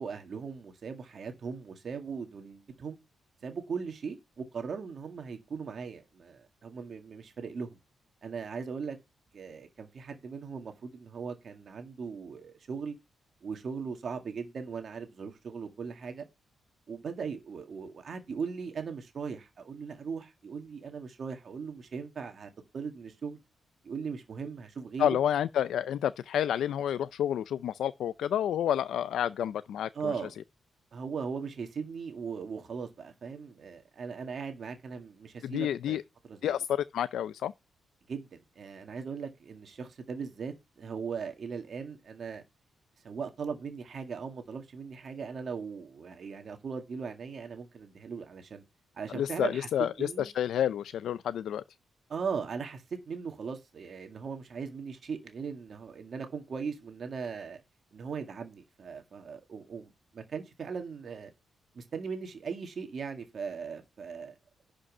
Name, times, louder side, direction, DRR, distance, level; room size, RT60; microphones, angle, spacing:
voice 1, 0.0-3.0 3.4-7.8 8.2-9.0 9.3-13.0 13.4-16.2 16.9-23.4 23.8-25.1 29.9-30.3 30.9-36.0 36.3-36.6 38.1-38.3 38.6-42.4 43.0-48.6 49.0-49.7 50.0-50.3 52.1-57.6 57.9-61.3 61.7-64.3, right 5 dB, 40° right, 1.8 m, -39 dB
voice 2, 25.0-30.1 35.4-36.0 36.4-37.5 49.1-51.6, left 10 dB, 80° left, 0.4 m, -29 dB
11.5 x 5.3 x 5.4 m
wide cardioid pair, 165°, 0 cm